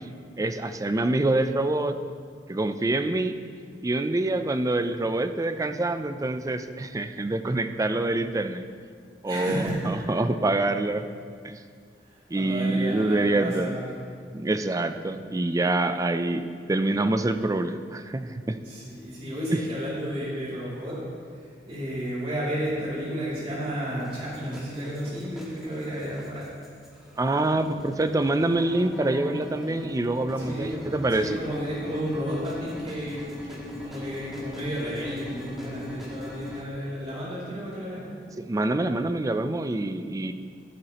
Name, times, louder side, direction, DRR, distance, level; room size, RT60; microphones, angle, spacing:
voice 1, 0.4-2.0 2.5-3.3 3.8-8.7 9.2-11.0 11.4-11.6 12.3-13.7 14.3-16.4 16.7-18.6 19.5-19.6 27.2-31.4 38.4-40.3, right 2 dB, 20° right, 9 dB, 0.4 m, -26 dB
voice 2, 9.2-10.2 12.3-13.9 18.6-21.0 21.4-26.5 30.4-30.8 31.2-38.1, equal, 35° right, -9 dB, 2.8 m, -32 dB
sound 1, 24.0-36.6, left 1 dB, ahead, 1.6 m, -40 dB
15.0 x 7.9 x 2.9 m, 2.1 s
head